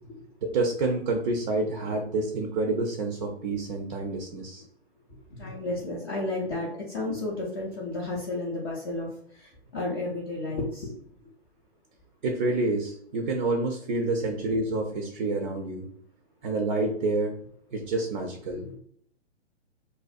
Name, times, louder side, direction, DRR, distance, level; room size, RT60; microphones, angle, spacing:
voice 1, 0.4-4.6 12.2-15.9 16.4-17.3 17.7-18.8, right 2 dB, 45° right, 3 dB, 0.4 m, -28 dB
voice 2, 5.3-11.0 18.7-18.8, left 2 dB, 25° left, -3 dB, 0.3 m, -32 dB
2.5 x 2.1 x 2.3 m, 0.64 s
hypercardioid pair, 125°, 34 cm